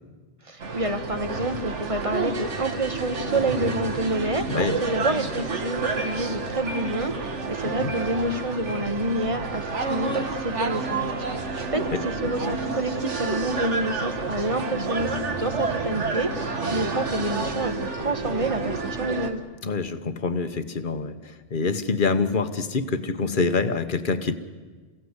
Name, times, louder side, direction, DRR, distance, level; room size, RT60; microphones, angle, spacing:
voice 1, 0.4-11.1 11.5-19.4, right 1 dB, 30° right, 9 dB, 1.2 m, -28 dB
sound 1, 0.6-19.3, right 4 dB, 70° right, 1.9 m, -29 dB
voice 2, 4.5-4.8 7.6-7.9 11.9-12.0 19.6-24.3, left 4 dB, 45° left, 10 dB, 1.3 m, -26 dB
28.5 x 16.5 x 8.1 m, 1.4 s
omnidirectional pair, 1.2 m